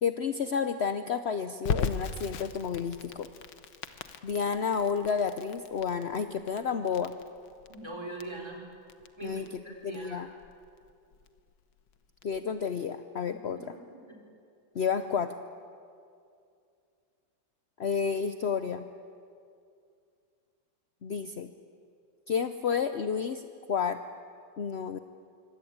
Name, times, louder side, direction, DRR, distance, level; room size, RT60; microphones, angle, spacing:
voice 1, 0.0-3.3 4.2-7.1 9.2-9.5 9.8-10.3 12.2-13.6 14.7-15.3 17.8-18.9 21.0-21.5 22.3-24.0 24.6-25.0, left 6 dB, 55° left, 9 dB, 0.7 m, -30 dB
Crackle, 1.6-12.4, left 6 dB, 85° left, 2.0 m, -39 dB
voice 2, 7.7-8.6 9.2-10.2 13.3-14.2, right 2 dB, 15° right, 0 dB, 4.5 m, -42 dB
26.0 x 24.5 x 8.7 m, 2.4 s
omnidirectional pair, 2.1 m